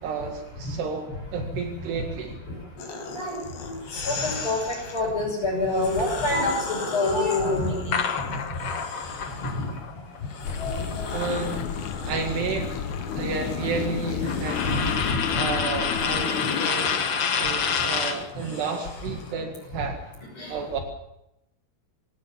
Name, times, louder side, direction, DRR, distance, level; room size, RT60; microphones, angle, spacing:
voice 1, 0.0-2.4 11.1-11.7 12.0-12.8 13.1-15.0 15.4-17.0 17.2-20.1 20.5-20.8, right 5 dB, 75° right, 4 dB, 4.0 m, -31 dB
sound 1, 2.8-5.0 5.6-9.7 10.2-19.3, left 4 dB, 85° left, 6.3 m, -38 dB
voice 2, 3.1-8.0 9.5-9.7 10.6-11.1 14.2-14.3 14.6-14.8 15.1-15.2 19.7-19.8 20.4-20.5, left 2 dB, 30° left, -5 dB, 7.0 m, -27 dB
sound 2, 7.9-12.0 12.3-18.3, left 6 dB, 55° left, 1.7 m, -29 dB
sound 3, 10.4-16.7, left 8 dB, 70° left, 1.9 m, -32 dB
26.0 x 17.5 x 7.3 m, 0.85 s
omnidirectional pair, 4.9 m